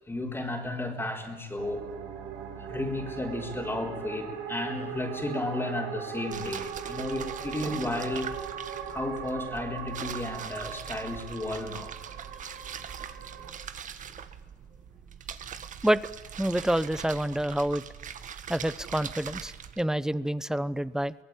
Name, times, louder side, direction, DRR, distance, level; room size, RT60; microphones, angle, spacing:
voice 1, 0.1-1.9 2.5-8.3 8.9-11.9, left 2 dB, 15° left, 0 dB, 4.2 m, -33 dB
sound 1, 1.6-13.5, right 8 dB, 90° right, 3.1 m, -39 dB
sound 2, 6.3-19.8, right 8 dB, 50° right, 1.7 m, -42 dB
voice 2, 16.4-17.8 18.5-21.1, right 1 dB, 5° right, 17 dB, 0.8 m, -27 dB
24.0 x 18.5 x 9.0 m, 1.1 s
cardioid pair, 110°, 17 cm